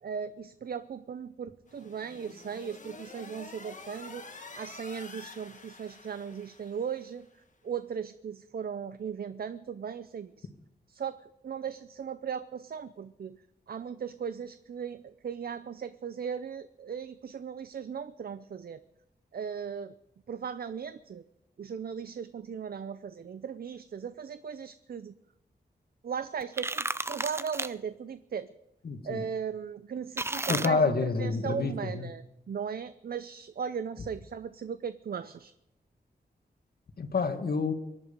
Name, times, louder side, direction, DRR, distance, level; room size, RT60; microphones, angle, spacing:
voice 1, 0.0-7.3 7.6-10.5 10.9-13.4 13.7-18.8 19.3-20.0 20.3-21.2 21.6-25.1 26.0-28.5 29.0-35.5, right 7 dB, 60° right, 13 dB, 0.6 m, -37 dB
sound 1, 1.7-7.2, left 3 dB, 45° left, 1.9 m, -48 dB
sound 2, 26.4-27.7 30.2-30.7, right 2 dB, 15° right, 0.4 m, -32 dB
voice 2, 28.8-29.2 30.5-32.1 37.0-37.7, left 4 dB, 65° left, 7 dB, 1.8 m, -28 dB
24.0 x 11.0 x 5.2 m, 0.90 s
wide cardioid pair, 145°, 17 cm